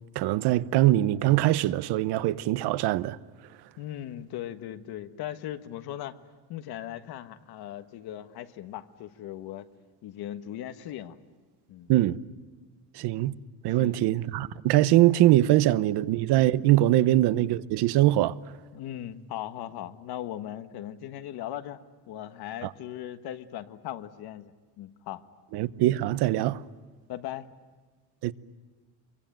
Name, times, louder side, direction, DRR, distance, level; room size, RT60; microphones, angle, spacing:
voice 1, 0.1-3.2 11.9-12.2 13.0-13.4 13.6-18.3 25.5-26.6 28.2-28.3, right 15 dB, 85° right, 0.9 m, -22 dB
voice 2, 3.8-6.2 6.5-9.7 10.0-11.2 11.7-11.9 13.7-14.0 16.9-17.1 18.7-21.8 22.1-24.5 24.8-25.2 27.1-27.5, left 12 dB, 70° left, 1.5 m, -38 dB
27.0 x 23.5 x 9.1 m
cardioid pair, 170°, 39 cm